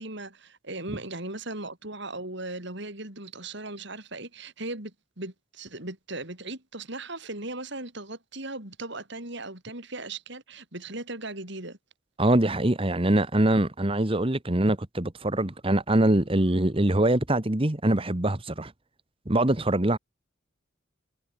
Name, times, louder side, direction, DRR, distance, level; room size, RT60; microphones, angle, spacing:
voice 1, 0.0-11.8, right 2 dB, 55° right, 5.9 m, -38 dB
voice 2, 12.2-18.7 19.3-20.0, right 1 dB, 25° right, 1.3 m, -23 dB
head